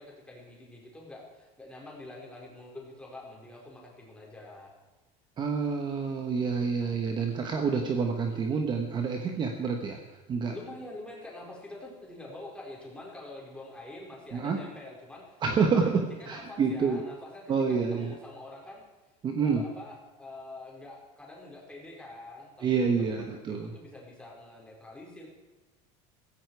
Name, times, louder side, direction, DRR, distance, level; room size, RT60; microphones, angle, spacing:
voice 1, 0.0-4.7 10.5-15.9 16.2-18.8 19.4-22.7 23.0-25.3, left 2 dB, 5° left, -2 dB, 4.6 m, -46 dB
voice 2, 5.4-10.0 10.3-10.5 14.3-14.6 15.4-17.0 17.5-18.2 19.2-19.6 22.6-23.7, right 5 dB, 30° right, 4 dB, 1.3 m, -28 dB
16.5 x 15.5 x 4.8 m, 1.2 s
cardioid pair, 150°, 16 cm